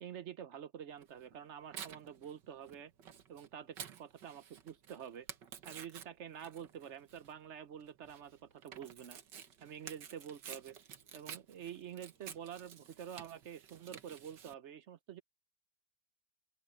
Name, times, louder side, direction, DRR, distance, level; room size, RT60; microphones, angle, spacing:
voice 1, 0.0-2.9 3.3-5.3 5.6-9.2 9.6-10.8 11.1-15.2, right 9 dB, 60° right, 0.8 m, -48 dB
Tearing, 1.0-14.5, right 8 dB, 85° right, 2.0 m, -52 dB
open air
omnidirectional pair, 1.9 m